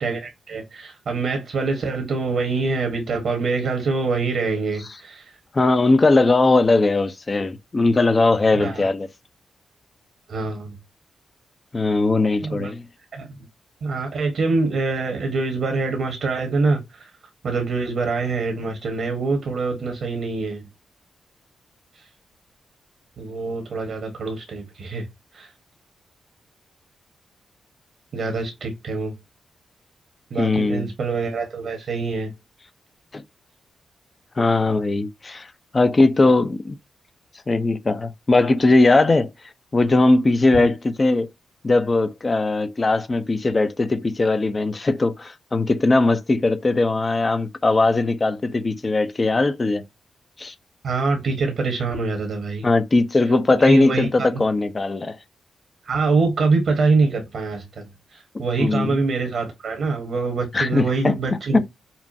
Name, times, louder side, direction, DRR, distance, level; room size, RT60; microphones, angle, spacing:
voice 1, 0.0-5.4 8.5-8.9 10.3-10.8 12.4-12.7 13.1-13.4 13.8-17.1 17.4-20.6 21.9-22.1 23.2-25.1 25.3-25.5 28.1-29.1 30.3-32.3 40.5-40.7 50.8-52.7 53.6-54.4 55.8-61.6, right 3 dB, 70° right, 1.2 m, -25 dB
voice 2, 5.5-9.1 11.7-12.8 30.4-30.9 33.1-33.2 34.4-35.5 35.7-36.8 37.5-39.3 39.7-41.3 41.6-49.8 50.4-50.5 52.6-55.2 58.6-59.0 60.5-61.6, left 2 dB, 40° left, 0.6 m, -19 dB
5.7 x 2.2 x 2.7 m
supercardioid pair, 40°, 0 cm